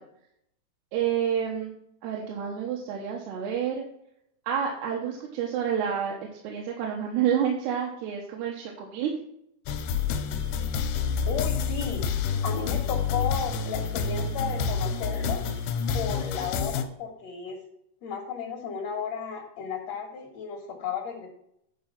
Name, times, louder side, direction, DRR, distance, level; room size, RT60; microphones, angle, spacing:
voice 1, 0.9-1.8 2.0-3.8 4.5-6.2 6.4-9.1, right 8 dB, 80° right, -1 dB, 3.2 m, -29 dB
sound 1, 9.7-16.8, left 6 dB, 80° left, 2.7 m, -28 dB
voice 2, 11.3-12.1 12.4-15.4 15.9-17.6 18.0-21.3, left 6 dB, 65° left, 1 dB, 1.7 m, -34 dB
10.0 x 4.8 x 5.8 m, 0.74 s
omnidirectional pair, 4.8 m